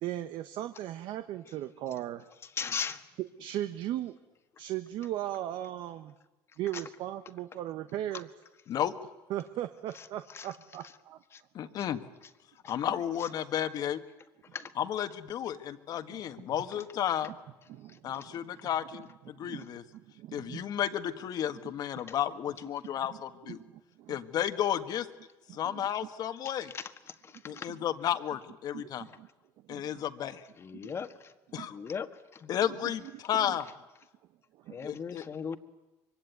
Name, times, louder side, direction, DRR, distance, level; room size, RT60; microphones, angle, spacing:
voice 1, 0.0-2.2 3.4-4.1 4.6-6.1 6.6-8.3 9.3-11.2 11.6-11.7 12.9-13.0 16.1-16.2 17.7-18.4 19.4-20.7 23.1-23.2 23.4-24.2 25.5-25.8 27.5-27.8 28.7-29.3 29.7-30.0 30.8-30.9 31.5-31.8 32.7-32.9 33.4-33.6 34.5-34.9, right 13 dB, 60° right, 9 dB, 1.1 m, -38 dB
voice 2, 2.6-3.0 10.3-10.5 11.3-11.4 14.5-14.7 22.1-22.2 26.7-26.8 27.5-27.7 30.6-31.1 31.7-32.1 32.4-32.5 34.7-35.6, left 6 dB, 30° left, 9 dB, 1.6 m, -36 dB
voice 3, 11.5-12.0 12.7-14.0 14.7-17.3 18.0-19.8 20.3-23.6 24.1-25.1 25.5-26.7 27.4-29.1 29.7-30.4 31.5-31.7 32.5-33.7 34.8-35.2, left 10 dB, 50° left, 10 dB, 1.6 m, -32 dB
24.5 x 24.0 x 9.4 m, 1.0 s
cardioid pair, 135°, 9 cm